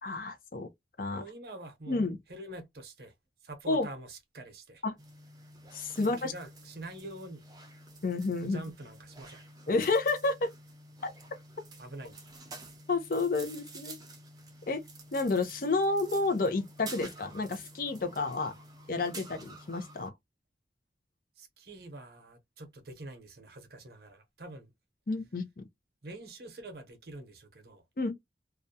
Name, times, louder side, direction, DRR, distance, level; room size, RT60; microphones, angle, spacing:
voice 1, 0.0-0.7 1.0-1.2 1.9-2.2 3.7-3.9 4.8-4.9 5.7-6.3 8.0-8.6 9.7-10.5 11.0-11.1 12.9-14.0 14.7-14.8 15.1-18.5 18.9-20.1 25.1-25.7 28.0-28.1, left 3 dB, 50° left, 0.5 m, -30 dB
voice 2, 1.1-2.0 2.3-3.1 3.4-4.8 6.0-7.4 8.4-9.4 11.8-12.1 21.4-24.7 26.0-27.8, right 2 dB, 60° right, 0.7 m, -45 dB
sound 1, 5.0-20.1, right 2 dB, 20° right, 0.5 m, -49 dB
2.4 x 2.1 x 2.6 m
head